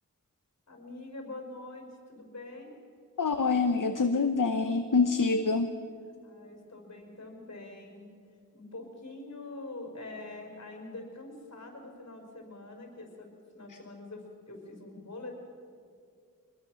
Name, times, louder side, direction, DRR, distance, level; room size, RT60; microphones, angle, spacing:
voice 1, 0.7-2.8 6.2-8.1 8.5-15.3, left 2 dB, 50° left, 2 dB, 5.6 m, -45 dB
voice 2, 3.2-5.7 13.7-13.8, left 4 dB, 65° left, 7 dB, 1.0 m, -26 dB
24.5 x 21.0 x 6.4 m, 2.3 s
wide cardioid pair, 65°, 34 cm